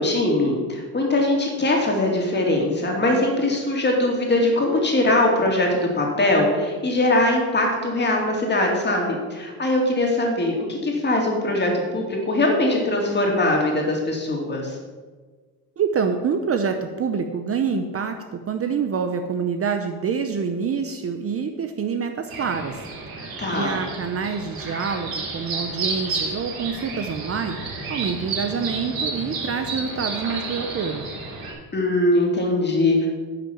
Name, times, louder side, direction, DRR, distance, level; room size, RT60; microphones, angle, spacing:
voice 1, 0.0-14.8 23.4-23.8 31.7-33.1, left 1 dB, 25° left, 0 dB, 2.6 m, -21 dB
voice 2, 15.8-22.8 23.5-27.6 27.9-31.1, right 6 dB, 35° right, 6 dB, 0.7 m, -26 dB
sound 1, 22.3-31.5, right 3 dB, 60° right, 3.8 m, -31 dB
10.5 x 5.9 x 7.2 m, 1.4 s
cardioid pair, 130°, 39 cm